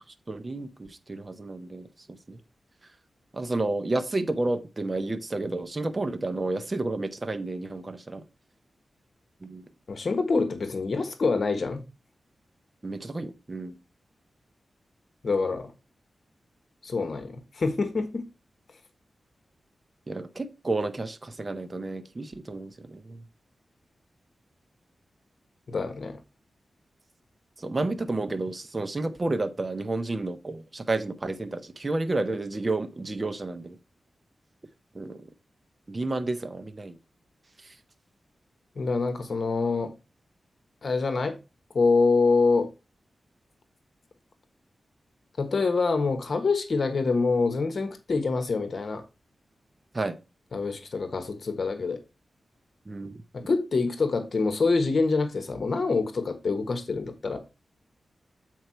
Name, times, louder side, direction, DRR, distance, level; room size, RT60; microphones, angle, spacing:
voice 1, 0.3-1.8 2.3-2.4 3.3-8.2 9.4-9.6 12.8-13.7 20.1-23.2 27.6-33.8 34.9-35.2 35.9-36.9 49.9-50.1 52.9-53.1, right 2 dB, 30° right, 0.7 m, -31 dB
voice 2, 9.9-11.8 15.2-15.7 16.8-18.2 25.7-26.2 38.8-39.9 40.8-41.4 41.7-42.7 45.4-49.0 50.5-52.0 53.3-57.4, left 4 dB, 60° left, 1.2 m, -26 dB
7.9 x 4.6 x 4.4 m
wide cardioid pair, 95°, 0 cm